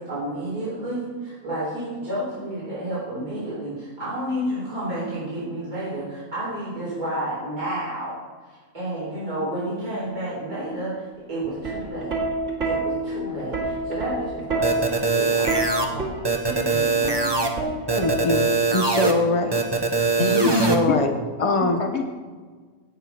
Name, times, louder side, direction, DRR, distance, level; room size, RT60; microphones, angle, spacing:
voice 1, 0.0-10.9 11.3-12.1 12.6-15.5 15.8-16.1 16.6-17.4, right 1 dB, 85° right, -9 dB, 4.6 m, -31 dB
Plucked string instrument, 11.4-18.7 19.8-20.1, right 2 dB, 55° right, 2.5 m, -28 dB
sound 1, 14.6-15.9 16.2-17.5 17.9-19.1 19.5-20.7, right 3 dB, 20° right, 0.8 m, -22 dB
voice 2, 17.9-18.5 18.7-19.6 20.5-21.1 21.4-21.8, left 3 dB, 25° left, 5 dB, 0.8 m, -22 dB
voice 3, 20.2-20.6 20.9-21.0 21.4-22.0, left 5 dB, 55° left, 3 dB, 1.0 m, -26 dB
17.5 x 6.2 x 4.2 m, 1.5 s
omnidirectional pair, 1.5 m